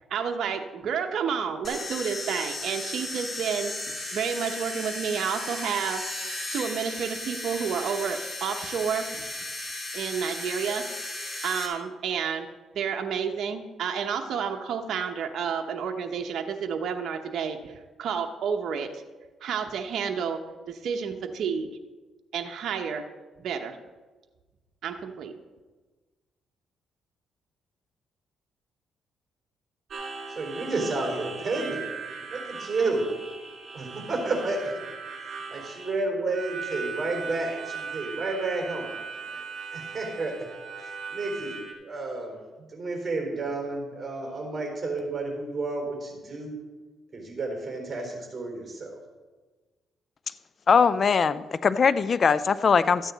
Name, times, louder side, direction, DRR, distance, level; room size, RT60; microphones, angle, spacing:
voice 1, 0.1-3.7 4.1-6.1 6.5-9.2 9.9-10.9 11.2-12.5 12.7-19.0 19.4-21.7 22.3-23.1 23.4-23.8 24.8-25.3, right 7 dB, 65° right, 4 dB, 0.8 m, -30 dB
sound 1, 1.6-11.7, left 2 dB, 25° left, 2.4 m, -35 dB
Harmonica, 29.9-41.7, right 5 dB, 50° right, 2.9 m, -38 dB
voice 2, 30.3-31.9 32.3-33.0 33.7-34.8 35.2-39.0 39.2-39.4 39.7-40.5 40.8-42.4 42.7-46.5 47.1-49.0, right 3 dB, 30° right, 1 dB, 3.8 m, -31 dB
voice 3, 50.7-53.1, left 6 dB, 45° left, 16 dB, 0.4 m, -21 dB
13.5 x 9.0 x 4.0 m, 1.3 s
cardioid pair, 90°, 0 cm